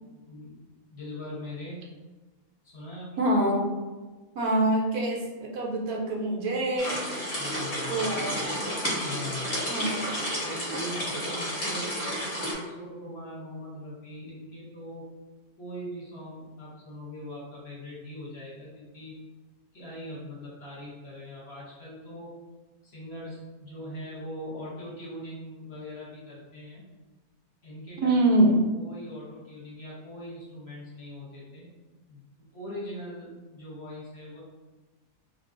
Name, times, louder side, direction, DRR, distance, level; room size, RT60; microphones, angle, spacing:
voice 1, 0.3-0.6 0.9-1.8 2.6-3.2 7.4-8.6 8.8-9.6 10.4-15.1 15.6-19.1 19.7-22.4 22.8-26.8 27.6-28.3 28.7-31.7 32.1-32.3 32.5-34.4, left 1 dB, 50° left, -6 dB, 0.9 m, -41 dB
voice 2, 3.2-3.7 4.3-7.0 7.8-8.3 9.7-10.3 28.0-28.6, right 1 dB, 75° right, -1 dB, 1.1 m, -25 dB
sound 1, 6.8-12.5, equal, 20° left, 0.9 m, -31 dB
3.5 x 2.3 x 2.5 m, 1.2 s
omnidirectional pair, 1.6 m